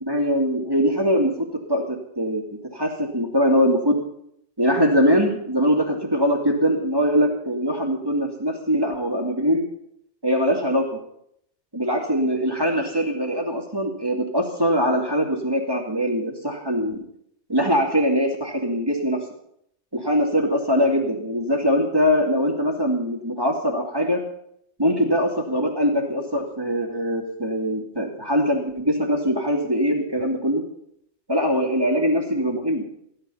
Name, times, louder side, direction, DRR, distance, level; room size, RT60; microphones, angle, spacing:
voice 1, 0.1-4.0 4.6-9.7 10.2-11.0 11.7-17.0 17.5-19.2 19.9-24.2 24.8-30.6 31.3-32.8, equal, 20° right, 1 dB, 2.6 m, -22 dB
15.5 x 12.0 x 5.7 m, 0.72 s
omnidirectional pair, 1.2 m